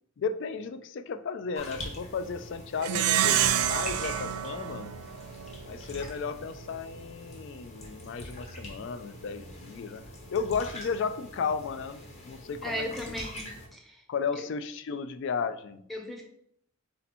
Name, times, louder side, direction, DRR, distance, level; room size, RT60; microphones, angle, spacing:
voice 1, 0.2-4.9 5.7-10.0 10.3-12.9 14.1-15.8, left 5 dB, 55° left, 11 dB, 0.3 m, -34 dB
sound 1, 1.5-13.7, left 1 dB, 30° left, 0.8 m, -44 dB
Plucked string instrument, 2.8-5.6, right 11 dB, 85° right, 0.3 m, -27 dB
voice 2, 12.6-14.0 15.9-16.2, equal, ahead, 0 dB, 0.6 m, -36 dB
4.2 x 2.8 x 4.2 m, 0.71 s
head